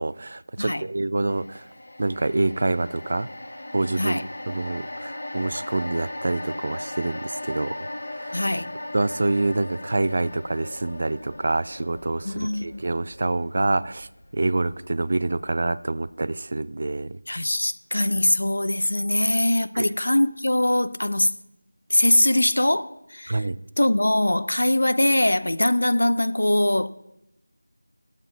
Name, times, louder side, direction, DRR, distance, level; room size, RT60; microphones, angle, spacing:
voice 1, 0.0-1.7 2.0-3.3 3.7-4.2 4.5-7.8 8.1-8.4 8.9-17.2 19.7-19.9 23.3-23.6, right 2 dB, 40° right, 0.3 m, -26 dB
sound 1, 1.3-15.6 16.0-16.1, left 1 dB, 55° left, 1.2 m, -38 dB
voice 2, 8.3-8.7 12.2-12.8 17.3-21.3 21.9-23.5 23.8-26.9, left 1 dB, 75° left, 0.7 m, -22 dB
11.5 x 7.6 x 6.2 m
figure-of-eight pair, 175°, 0 cm